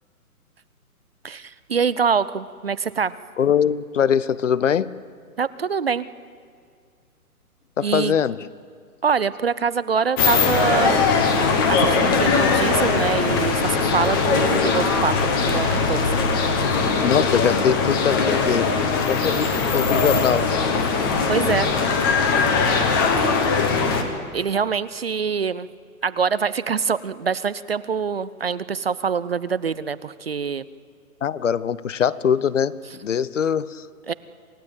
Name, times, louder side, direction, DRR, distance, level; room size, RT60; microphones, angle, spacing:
voice 1, 1.2-3.2 5.4-6.1 7.8-8.1 9.0-11.0 11.7-16.2 21.3-21.7 24.3-25.7 26.0-30.7 34.1-34.2, right 6 dB, 40° right, 16 dB, 0.5 m, -24 dB
voice 2, 3.4-4.9 7.8-8.5 17.0-18.8 19.1-20.5 31.2-33.8, left 8 dB, 55° left, 19 dB, 0.8 m, -22 dB
sound 1, 10.2-24.0, left 4 dB, 15° left, 1.1 m, -20 dB
27.5 x 16.5 x 8.9 m, 2.2 s
hypercardioid pair, 165°, 45 cm